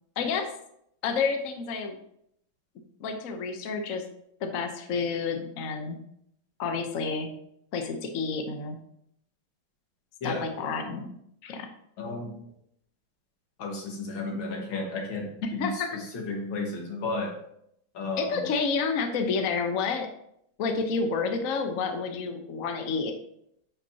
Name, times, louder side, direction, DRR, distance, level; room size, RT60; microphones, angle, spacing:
voice 1, 0.2-0.5 1.0-2.0 3.0-4.0 4.4-6.0 6.6-7.3 7.7-8.8 10.2-11.1 11.4-11.7 15.6-15.9 18.2-20.1 20.6-23.1, left 5 dB, 55° left, 5 dB, 1.1 m, -29 dB
voice 2, 12.0-12.4 13.6-17.4 17.9-18.5 21.7-21.8, left 2 dB, 90° left, 0 dB, 2.3 m, -33 dB
10.0 x 5.7 x 2.8 m, 0.73 s
omnidirectional pair, 2.1 m